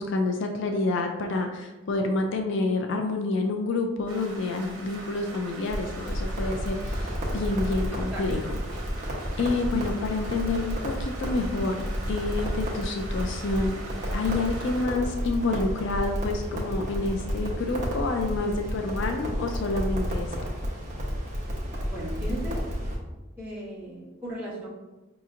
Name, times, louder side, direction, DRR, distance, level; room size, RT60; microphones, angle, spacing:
voice 1, 0.0-8.6 9.4-13.8 14.1-20.4, left 3 dB, 60° left, 4 dB, 0.4 m, -28 dB
Rain, 4.1-14.9, right 2 dB, 85° right, 0.9 m, -43 dB
Crackle, 5.7-23.0, equal, 35° right, 0.9 m, -31 dB
voice 2, 21.9-22.6 23.4-24.7, right 1 dB, 10° right, -10 dB, 1.4 m, -36 dB
5.1 x 2.8 x 2.4 m, 1.1 s
head